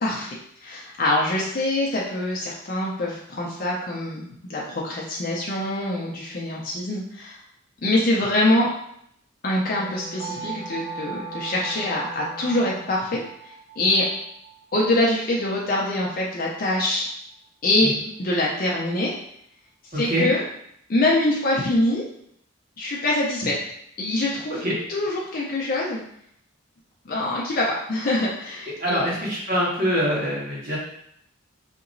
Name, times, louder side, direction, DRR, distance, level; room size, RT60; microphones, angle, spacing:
voice 1, 0.0-7.4 7.8-8.7 9.4-13.2 13.8-14.1 14.7-17.1 17.6-17.9 18.2-19.1 19.9-20.4 20.9-22.0 22.8-23.5 24.0-24.5 24.9-26.0 27.1-29.0, left 1 dB, 45° left, -4 dB, 0.5 m, -24 dB
Wind instrument woodwind instrument, 9.6-13.0, left 1 dB, 10° right, 0.6 m, -40 dB
sound 1, 10.2-16.0, right 8 dB, 70° right, 0.9 m, -40 dB
voice 2, 19.9-20.3 24.5-24.8 28.8-30.8, equal, 45° right, -5 dB, 1.4 m, -24 dB
5.1 x 2.9 x 2.6 m, 0.71 s
head